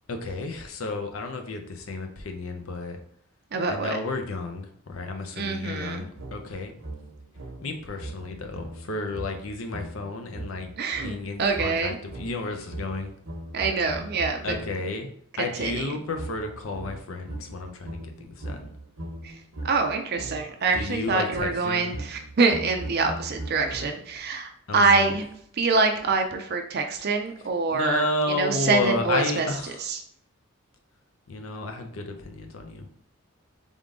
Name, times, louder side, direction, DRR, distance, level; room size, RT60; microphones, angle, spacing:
voice 1, 0.1-3.0 3.7-6.7 7.6-10.7 11.0-13.1 14.4-15.1 15.4-18.6 20.7-22.0 24.7-25.1 27.7-29.8 31.3-32.9, left 2 dB, 75° left, 5 dB, 0.7 m, -32 dB
voice 2, 3.5-4.0 5.4-6.1 10.8-12.0 13.5-14.4 15.4-15.9 19.2-19.3 19.6-25.2 25.6-29.5 29.8-30.0, right 4 dB, 50° right, 5 dB, 0.5 m, -25 dB
sound 1, 6.2-14.9 15.6-24.2, right 1 dB, 85° right, 1.0 m, -39 dB
3.7 x 3.6 x 3.6 m, 0.64 s
head